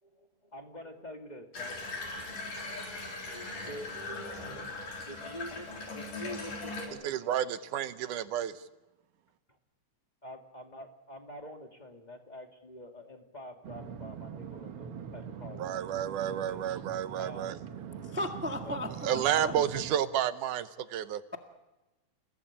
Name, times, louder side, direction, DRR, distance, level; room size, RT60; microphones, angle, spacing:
voice 1, 0.0-7.2 9.5-9.6 10.2-16.2 16.5-16.6 17.2-17.6 18.6-18.8, left 1 dB, 15° left, 3 dB, 2.0 m, -47 dB
Water tap faucet / Bathtub (filling or washing), 1.5-6.9, left 2 dB, 85° left, 5.6 m, -40 dB
voice 2, 7.0-8.5 15.6-17.6 19.0-21.2, right 10 dB, 80° right, 12 dB, 2.5 m, -31 dB
sound 1, 13.6-20.0, right 8 dB, 60° right, 1.8 m, -43 dB
voice 3, 18.1-19.6, left 1 dB, 15° right, 4 dB, 0.4 m, -36 dB
29.0 x 18.0 x 8.8 m, 1.0 s
omnidirectional pair, 3.6 m